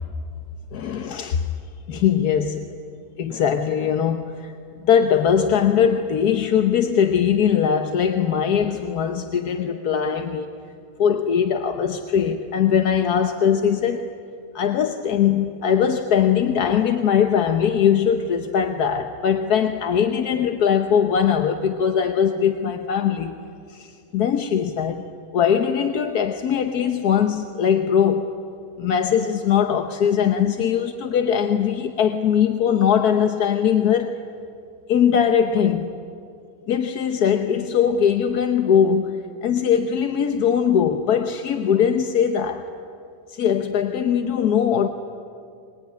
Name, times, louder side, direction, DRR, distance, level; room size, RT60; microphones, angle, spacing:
voice 1, 0.7-1.5 1.9-2.7 3.2-4.5 4.8-10.5 11.0-14.1 14.5-23.3 23.7-25.0 25.3-28.4 28.8-34.2 34.9-35.9 36.7-42.7 43.3-44.9, left 8 dB, 85° left, 6 dB, 1.5 m, -21 dB
24.5 x 22.0 x 9.4 m, 2.4 s
omnidirectional pair, 1.6 m